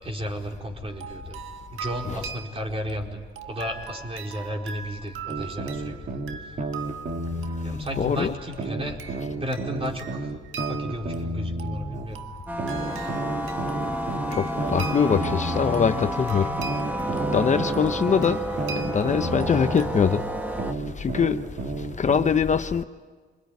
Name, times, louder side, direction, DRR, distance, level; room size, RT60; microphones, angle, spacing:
voice 1, 0.0-1.4 1.7-3.2 3.4-6.1 6.4-6.6 7.6-9.0 9.4-10.3 10.6-12.3, equal, 30° right, 4.7 m, -33 dB
sound 1, 0.9-19.9, right 6 dB, 80° right, 1.5 m, -41 dB
sound 2, 5.3-8.1 8.6-12.1 12.6-16.1 16.6-20.1 20.6-22.3, right 2 dB, 45° right, 2.3 m, -32 dB
voice 2, 8.0-8.3 14.3-16.5 17.3-18.4 18.8-20.2 21.0-21.4 22.0-22.8, left 6 dB, 35° left, 0.9 m, -23 dB
sound 3, 12.5-20.7, right 1 dB, 10° right, 1.7 m, -30 dB
27.0 x 22.0 x 9.6 m
cardioid pair, 90°, 20 cm